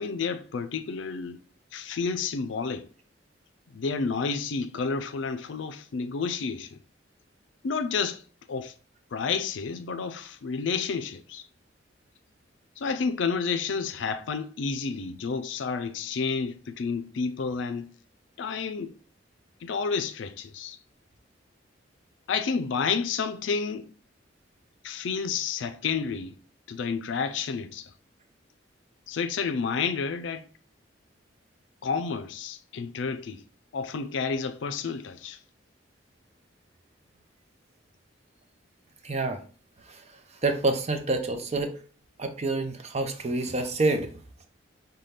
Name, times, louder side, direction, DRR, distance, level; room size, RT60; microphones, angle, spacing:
voice 1, 0.0-1.4 1.7-2.9 3.7-6.8 7.6-8.2 8.5-8.7 9.1-11.4 12.8-17.9 18.4-18.9 19.6-20.8 22.3-23.9 24.8-26.4 26.7-27.9 29.1-30.5 31.8-33.4 33.7-35.4, left 5 dB, 75° left, 0.4 m, -30 dB
voice 2, 39.0-39.4 39.9-40.0 40.4-41.7 42.2-44.1, right 2 dB, 35° right, 0.6 m, -27 dB
5.5 x 2.2 x 3.3 m
head